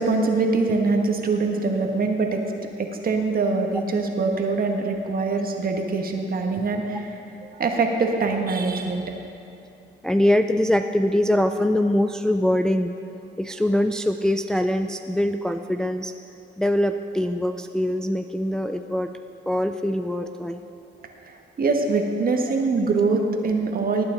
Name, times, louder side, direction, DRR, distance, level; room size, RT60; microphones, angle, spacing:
voice 1, 0.0-2.4 2.8-7.1 7.4-9.1 21.2-24.0, right 3 dB, 45° right, 3 dB, 1.4 m, -23 dB
voice 2, 10.0-12.9 13.4-16.1 16.6-19.1 19.5-20.6, left 1 dB, 5° left, 7 dB, 0.4 m, -23 dB
19.0 x 8.8 x 3.9 m, 2.7 s
cardioid pair, 90°, 20 cm